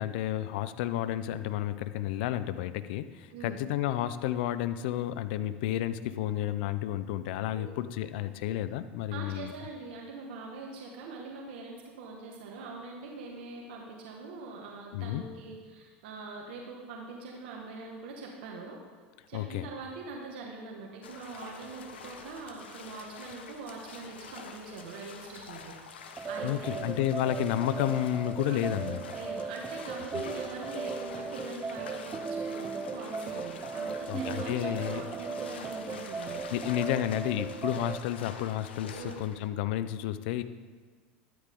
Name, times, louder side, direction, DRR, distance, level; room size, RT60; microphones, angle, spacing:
voice 1, 0.0-9.5 14.9-15.2 19.3-19.7 26.4-29.0 30.1-30.2 34.1-35.1 36.5-40.4, left 12 dB, 70° left, 13 dB, 0.8 m, -31 dB
voice 2, 9.1-18.8 19.3-27.0 28.4-28.8 29.1-36.4 38.9-39.2, right 3 dB, 75° right, 0 dB, 1.9 m, -43 dB
sound 1, 21.0-39.5, left 5 dB, 90° left, 1.2 m, -47 dB
sound 2, 26.2-38.0, right 5 dB, 25° right, 0.6 m, -37 dB
13.0 x 12.0 x 3.8 m, 1.4 s
hypercardioid pair, 90°, 6 cm